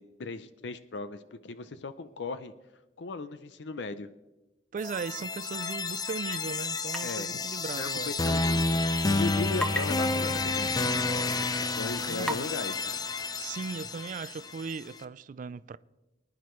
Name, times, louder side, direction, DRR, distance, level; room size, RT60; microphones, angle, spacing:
voice 1, 0.0-2.5 3.0-4.1 7.0-7.4 7.8-13.0, left 3 dB, 75° left, 0.6 m, -38 dB
voice 2, 4.7-8.1 11.4-11.5 12.0-12.4 13.3-15.8, right 5 dB, 50° right, 0.3 m, -37 dB
sound 1, 4.8-14.7, left 3 dB, 20° left, 0.5 m, -30 dB
sound 2, 6.9-7.2 7.5-7.6 9.5-9.8 10.4-10.5 11.2-11.3 12.2-12.5, equal, 5° left, 1.0 m, -32 dB
23.5 x 10.0 x 3.1 m
head